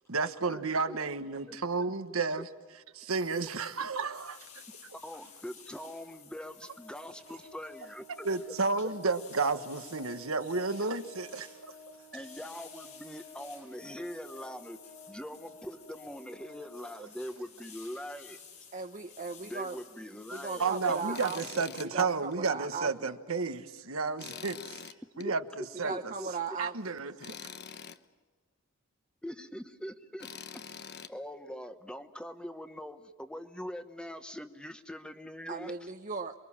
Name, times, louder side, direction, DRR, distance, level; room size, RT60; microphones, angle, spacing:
voice 1, 0.1-2.5 2.9-4.6 8.2-11.7 20.6-26.1 26.6-27.5, right 4 dB, 70° right, 1.3 m, -32 dB
sound 1, 3.1-21.9, left 7 dB, 85° left, 6.9 m, -54 dB
voice 2, 5.0-8.3 12.1-14.8 15.1-18.4 19.4-20.7 21.1-21.2 25.2-25.3 25.9-26.3 29.2-30.3 31.1-35.9, equal, 5° left, 1.2 m, -42 dB
Organ, 6.7-17.4, left 2 dB, 20° left, 1.7 m, -54 dB
voice 3, 18.7-19.8 20.3-21.7 21.9-23.1 25.8-27.0 35.5-36.3, right 5 dB, 35° right, 0.9 m, -37 dB
Tools, 21.1-21.9 22.3-22.4 24.2-25.3 27.2-28.0 30.2-31.1, left 7 dB, 50° left, 1.0 m, -44 dB
28.5 x 23.0 x 7.4 m
head